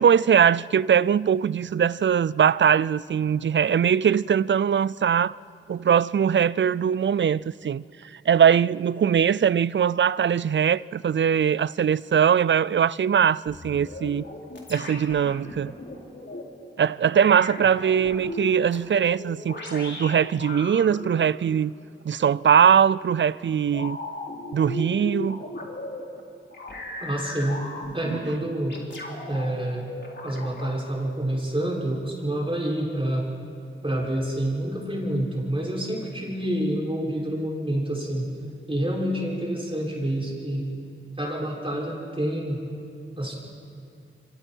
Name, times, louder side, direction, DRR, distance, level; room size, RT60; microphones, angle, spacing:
voice 1, 0.0-5.4 5.7-14.2 14.7-15.7 16.8-21.7 22.0-24.0 24.5-25.4 28.1-28.2, right 8 dB, 60° right, 0.4 m, -21 dB
sound 1, 13.5-16.4 17.2-21.2 22.5-22.7 23.7-26.0 26.5-28.2 28.7-29.5 29.8-30.7, left 2 dB, 60° left, 3.9 m, -37 dB
voice 2, 27.0-27.6 27.9-28.8 29.3-29.8 30.2-33.2 33.8-38.3 38.7-40.7 41.2-42.6 43.2-43.3, right 1 dB, 25° right, 6.4 m, -27 dB
29.0 x 24.5 x 4.6 m
cardioid pair, 50°, 21 cm